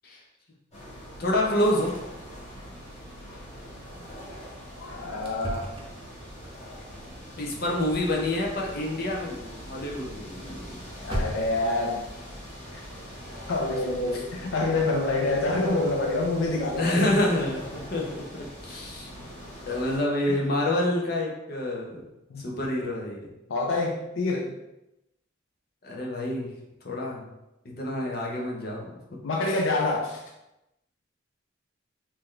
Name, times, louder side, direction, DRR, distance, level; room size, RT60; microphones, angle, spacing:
sound 1, 0.7-20.0, equal, 35° left, 1.2 m, -42 dB
voice 1, 1.2-1.9 7.4-10.8 16.7-19.1 19.7-22.0 22.4-23.3 25.8-26.5 26.8-27.3 27.6-28.9, left 1 dB, 50° left, -2 dB, 0.8 m, -28 dB
sound 2, 1.8-2.3 2.5-2.8 3.2-3.4 3.8-4.0 4.6-4.7 5.2-11.8 13.6-14.1 14.5-14.6 15.0-15.1, equal, 25° right, 0.7 m, -39 dB
voice 2, 4.8-5.7 11.0-12.0 13.5-17.2 20.3-20.4 22.3-22.4 23.5-24.5 29.2-30.2, left 2 dB, 80° left, 0 dB, 0.5 m, -27 dB
3.2 x 2.9 x 3.8 m, 0.91 s
head